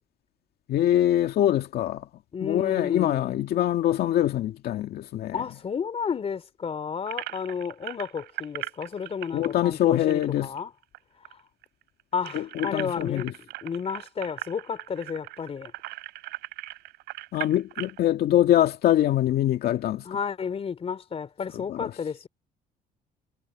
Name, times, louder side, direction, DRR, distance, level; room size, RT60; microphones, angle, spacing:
voice 1, 0.7-2.1 2.4-5.4 9.3-10.5 12.3-13.3 17.3-20.0 21.7-21.9, left 12 dB, 65° left, 2.2 m, -24 dB
voice 2, 2.3-3.4 5.3-10.7 12.1-15.7 20.0-22.3, left 6 dB, 35° left, 3.4 m, -32 dB
sound 1, 7.1-11.0 11.2-11.3 11.6-18.0, right 18 dB, 85° right, 3.9 m, -39 dB
cardioid pair, 110°, 17 cm